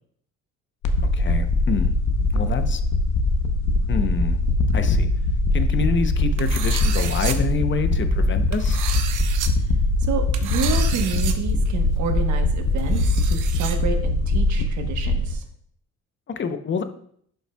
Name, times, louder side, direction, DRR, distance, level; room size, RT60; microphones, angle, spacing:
sound 1, 0.8-15.3, left 2 dB, 70° left, 0.9 m, -22 dB
voice 1, 1.0-1.9 2.3-2.8 3.9-4.4 4.7-5.1 5.5-8.8 16.3-16.8, left 5 dB, 40° left, 8 dB, 0.8 m, -27 dB
sound 2, 6.4-7.4 8.5-9.5 10.3-11.3 11.6-11.7 12.8-13.8, right 9 dB, 85° right, 0.8 m, -31 dB
voice 2, 10.0-15.4, right 6 dB, 70° right, 5 dB, 1.2 m, -29 dB
11.0 x 5.4 x 2.3 m, 0.63 s
cardioid pair, 90°, 30 cm